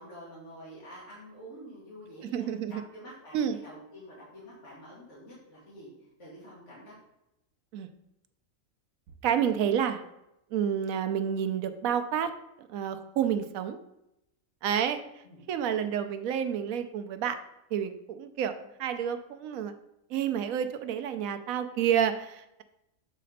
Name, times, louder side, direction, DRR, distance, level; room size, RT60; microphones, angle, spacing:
voice 1, 0.0-7.0 15.2-15.4, equal, 60° left, -7 dB, 2.2 m, -48 dB
voice 2, 2.3-2.8 3.3-3.6 7.7-7.9 9.2-10.0 10.5-12.3 12.6-13.8 14.6-15.0 15.5-17.4 17.7-19.7 20.1-22.6, right 8 dB, 80° right, 9 dB, 1.0 m, -29 dB
7.4 x 4.2 x 4.0 m, 0.87 s
omnidirectional pair, 1.4 m